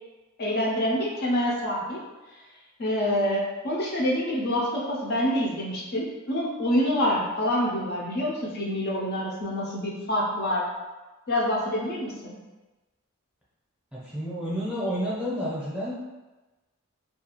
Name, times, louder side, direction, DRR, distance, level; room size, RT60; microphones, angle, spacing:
voice 1, 0.4-2.0 2.8-10.7 11.3-12.4, equal, 45° left, -4 dB, 0.4 m, -26 dB
voice 2, 13.9-16.1, equal, 5° right, -8 dB, 0.6 m, -30 dB
2.4 x 2.3 x 2.9 m, 1.2 s
head